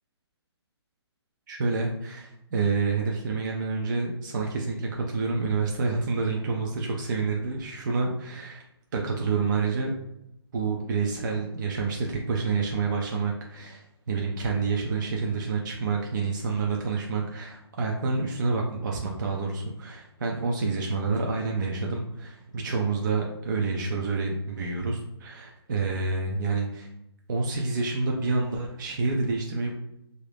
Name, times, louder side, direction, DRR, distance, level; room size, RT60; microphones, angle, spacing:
voice 1, 1.5-8.6 8.9-9.9 10.5-26.9 27.3-29.7, right 4 dB, 45° right, -1 dB, 0.4 m, -28 dB
2.9 x 2.5 x 3.3 m, 0.82 s
hypercardioid pair, 170°, 14 cm